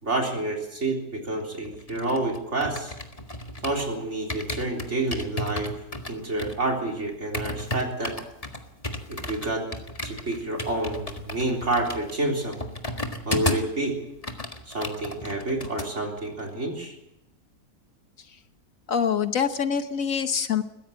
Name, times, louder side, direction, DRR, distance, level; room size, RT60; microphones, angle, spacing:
voice 1, 0.0-2.9 3.6-5.7 6.1-8.1 9.1-9.6 10.0-12.6 13.3-14.0 14.7-17.0, right 2 dB, 50° right, 1 dB, 4.1 m, -28 dB
sound 1, 1.6-3.9 4.3-13.8 14.1-15.9 16.2-16.4, left 1 dB, 25° left, 1.7 m, -34 dB
voice 2, 18.9-20.6, left 7 dB, 65° left, 9 dB, 1.4 m, -25 dB
21.5 x 16.0 x 8.1 m, 0.89 s
omnidirectional pair, 1.6 m